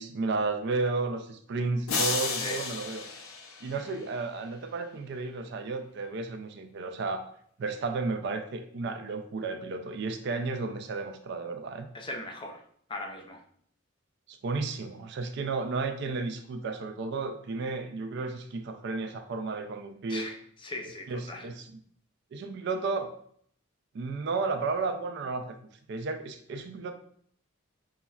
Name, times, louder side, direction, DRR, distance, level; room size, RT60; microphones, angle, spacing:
voice 1, 0.0-3.1 3.6-7.3 7.6-11.9 14.3-20.3 21.1-21.7 22.3-23.1 23.9-25.5 25.9-26.9, right 3 dB, 55° right, 6 dB, 0.4 m, -33 dB
sound 1, 1.9-4.2, left 4 dB, 85° left, 0.5 m, -33 dB
voice 2, 11.9-12.6 12.9-13.4 20.1-20.4 20.6-21.5, left 1 dB, 25° left, 3 dB, 0.4 m, -38 dB
5.5 x 2.1 x 2.3 m, 0.62 s
head